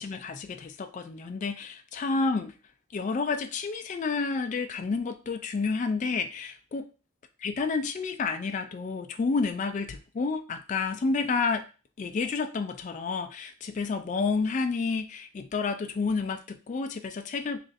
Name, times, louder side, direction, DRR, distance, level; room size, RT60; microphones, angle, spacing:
voice 1, 0.0-2.5 2.9-6.9 7.4-11.6 12.0-17.6, left 4 dB, 35° left, 7 dB, 0.3 m, -30 dB
3.2 x 2.5 x 3.9 m, 0.34 s
head